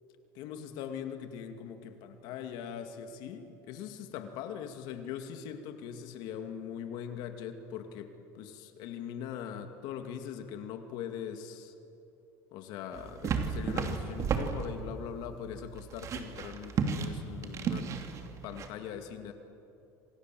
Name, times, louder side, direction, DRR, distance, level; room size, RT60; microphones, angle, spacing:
voice 1, 0.3-11.7 12.5-17.9 18.4-19.3, left 8 dB, 70° left, 7 dB, 2.3 m, -41 dB
sound 1, 12.9-18.7, right 5 dB, 40° right, 2.6 m, -34 dB
27.0 x 27.0 x 7.7 m, 2.8 s
cardioid pair, 130°, 8 cm